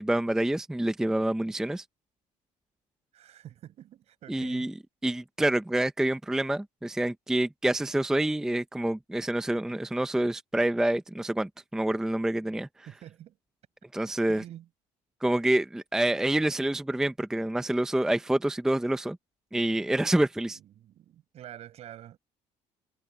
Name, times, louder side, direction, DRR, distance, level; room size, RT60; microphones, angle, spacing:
voice 1, 0.0-1.8 4.3-4.7 5.0-12.7 13.9-14.4 15.2-19.2 19.5-20.6, right 1 dB, 5° right, 0.6 m, -27 dB
voice 2, 3.1-4.7 12.9-13.4 14.3-14.7 15.4-15.5 19.6-20.0 20.5-22.2, right 12 dB, 55° right, 7.7 m, -47 dB
cardioid pair, 130°, 13 cm